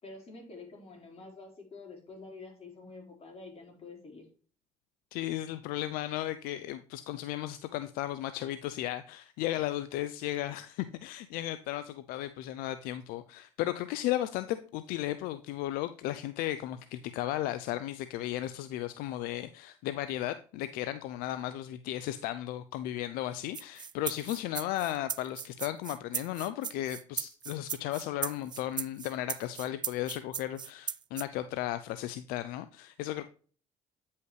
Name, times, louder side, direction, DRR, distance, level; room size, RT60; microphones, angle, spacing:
voice 1, 0.0-4.2, left 3 dB, 40° left, 0 dB, 4.1 m, -48 dB
voice 2, 5.1-33.3, left 14 dB, 75° left, 12 dB, 0.5 m, -35 dB
sound 1, 23.5-31.2, right 7 dB, 30° right, 0.4 m, -37 dB
9.2 x 5.6 x 3.2 m, 0.41 s
supercardioid pair, 70°, 15 cm